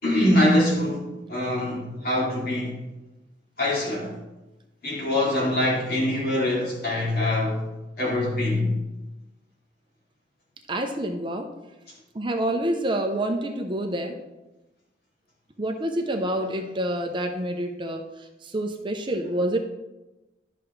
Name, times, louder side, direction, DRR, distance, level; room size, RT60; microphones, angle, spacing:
voice 1, 0.0-2.7 3.6-4.1 4.8-7.6 8.0-8.7, left 1 dB, 55° left, 2.8 m, -24 dB
voice 2, 10.7-11.5 12.1-14.2 15.6-18.0 18.4-19.6, right 1 dB, 25° right, 0.7 m, -27 dB
12.0 x 5.9 x 3.2 m
head